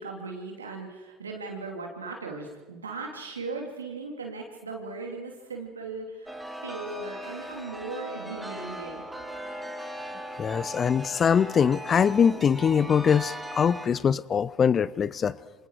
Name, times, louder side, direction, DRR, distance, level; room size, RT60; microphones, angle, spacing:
voice 1, 0.0-6.4 6.6-9.0, right 3 dB, 85° right, 2 dB, 2.9 m, -38 dB
Chime, 6.3-13.9, right 1 dB, 10° right, 3.4 m, -38 dB
voice 2, 10.4-15.4, left 7 dB, 35° left, 20 dB, 0.6 m, -23 dB
27.0 x 26.0 x 4.7 m, 1.2 s
hypercardioid pair, 70°, 0 cm